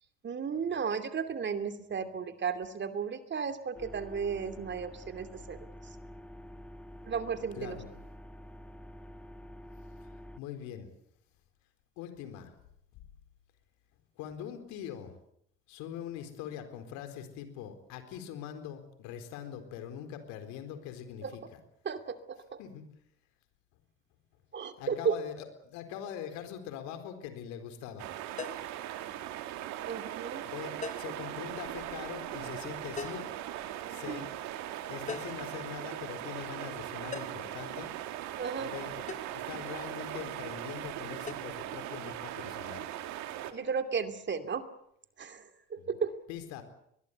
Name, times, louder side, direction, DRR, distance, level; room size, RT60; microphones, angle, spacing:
voice 1, 0.2-5.7 7.1-7.8 21.2-21.3 21.8-22.6 24.5-25.2 29.9-30.5 34.1-34.3 38.4-38.7 43.5-44.6 45.2-46.1, right 6 dB, 40° right, 9 dB, 2.7 m, -34 dB
sound 1, 3.7-10.4, equal, 5° left, 1.6 m, -48 dB
voice 2, 7.6-7.9 10.4-10.9 12.0-12.5 12.9-13.1 14.2-15.1 15.7-21.6 22.6-22.8 24.8-28.1 30.4-33.3 33.9-34.3 34.9-37.9 38.6-39.0 39.3-42.8 45.8-46.0 46.3-46.6, left 9 dB, 70° left, 8 dB, 4.3 m, -42 dB
sound 2, 28.0-43.5, right 12 dB, 70° right, 2.4 m, -39 dB
sound 3, 28.4-28.8 30.8-31.2 33.0-33.3 35.1-35.5 37.1-37.5 39.1-39.4 41.3-41.4, left 5 dB, 25° left, 1.0 m, -41 dB
22.5 x 21.5 x 8.2 m, 0.75 s
hypercardioid pair, 65°, 29 cm